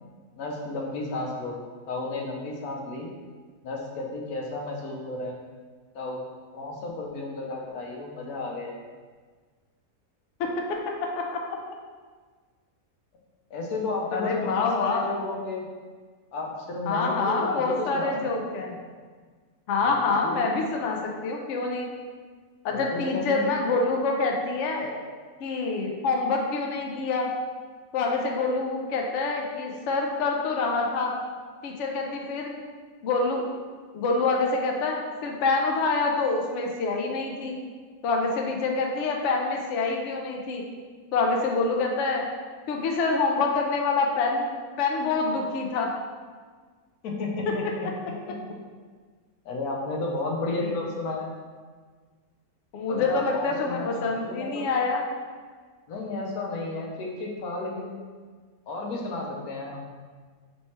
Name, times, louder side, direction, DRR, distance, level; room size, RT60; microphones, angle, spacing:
voice 1, 0.3-1.6 1.9-3.1 3.6-5.4 5.9-6.2 6.5-8.8 13.5-15.7 16.3-18.6 20.2-20.6 22.7-23.5 47.0-48.4 49.4-51.3 52.9-54.7 55.9-58.0 58.7-59.8, left 2 dB, 85° left, 0 dB, 1.2 m, -32 dB
voice 2, 10.4-11.4 14.1-15.1 16.9-18.8 19.7-21.9 22.6-24.9 25.4-27.3 27.9-31.1 31.6-32.5 33.0-33.5 33.9-37.6 38.0-40.6 41.1-42.3 42.7-44.5 44.8-45.9 47.5-47.6 50.6-50.7 52.7-55.0, left 3 dB, 65° left, 1 dB, 0.8 m, -26 dB
3.3 x 3.1 x 4.2 m, 1.5 s
omnidirectional pair, 1.5 m